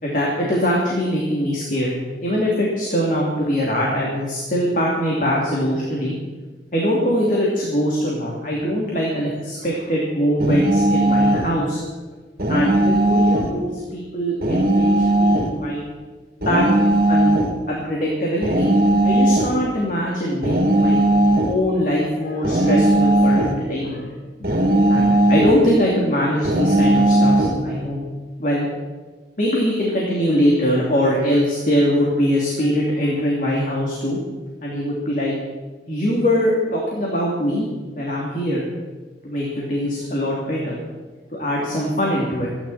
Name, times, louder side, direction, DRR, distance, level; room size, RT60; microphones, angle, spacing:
voice 1, 0.0-6.1 6.7-11.8 12.5-15.8 16.5-16.7 17.1-17.3 17.7-18.7 19.0-21.0 21.4-24.1 24.9-28.0 28.4-28.7 29.4-34.2 34.6-35.3 35.9-37.7 38.0-38.6 39.2-40.8 41.4-42.5, equal, 45° left, -4 dB, 3.0 m, -22 dB
sound 1, 10.4-11.5 12.4-13.5 14.4-15.5 16.4-17.5 18.4-19.6 20.4-21.6 22.4-23.6 24.4-25.6 26.4-27.6, right 1 dB, 55° right, 2.5 m, -17 dB
27.0 x 11.0 x 4.4 m, 1.3 s
head